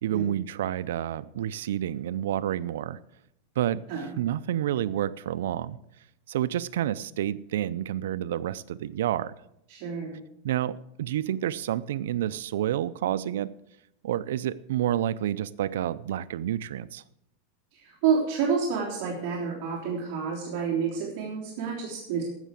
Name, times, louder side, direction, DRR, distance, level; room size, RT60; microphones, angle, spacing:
voice 1, 0.0-3.0 3.6-5.8 6.3-9.3 10.4-13.5 14.0-17.0, right 11 dB, 80° right, 16 dB, 0.5 m, -29 dB
voice 2, 9.7-10.2 17.7-22.2, right 6 dB, 50° right, -3 dB, 3.4 m, -29 dB
15.5 x 6.6 x 7.5 m, 0.80 s
supercardioid pair, 155°, 0 cm